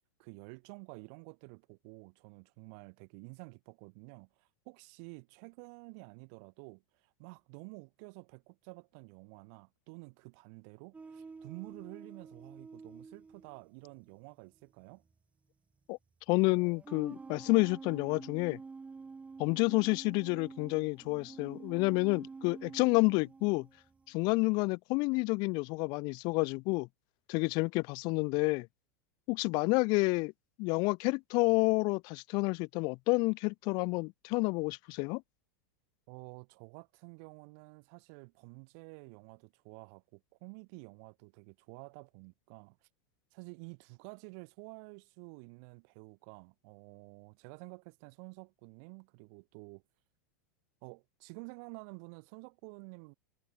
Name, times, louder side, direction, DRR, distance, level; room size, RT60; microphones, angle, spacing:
voice 1, 0.2-15.0 36.1-42.9 43.3-49.8 50.8-53.1, right 37 dB, 60° right, 3.5 m, -50 dB
sound 1, 10.9-14.2 15.1-15.2 16.5-24.3, right 4 dB, 15° right, 1.0 m, -49 dB
voice 2, 16.3-18.6 19.4-23.7 24.1-26.9 27.3-28.7 29.3-30.3 30.6-35.2, left 28 dB, 50° left, 0.4 m, -29 dB
hypercardioid pair, 120°, 10 cm